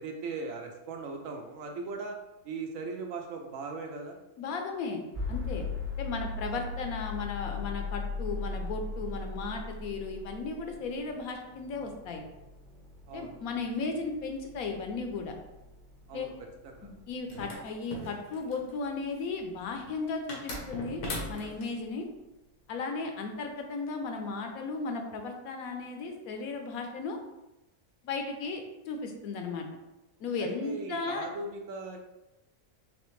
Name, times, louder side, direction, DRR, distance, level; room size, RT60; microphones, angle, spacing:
voice 1, 0.0-2.2 2.4-4.2 13.1-13.4 16.1-16.3 16.6-16.9 30.4-32.0, right 3 dB, 70° right, 2 dB, 0.9 m, -38 dB
voice 2, 4.4-5.0 5.3-5.6 6.0-12.2 13.1-15.3 16.1-16.3 16.8-21.0 21.3-22.1 22.7-27.2 28.0-29.7 30.2-31.3, left 4 dB, 75° left, 4 dB, 1.0 m, -35 dB
sound 1, 5.1-21.1, left 3 dB, 35° right, 1.1 m, -40 dB
sound 2, 17.3-18.7 20.3-21.7, left 1 dB, 90° left, 1.5 m, -38 dB
4.1 x 3.3 x 3.1 m, 0.95 s
omnidirectional pair, 1.6 m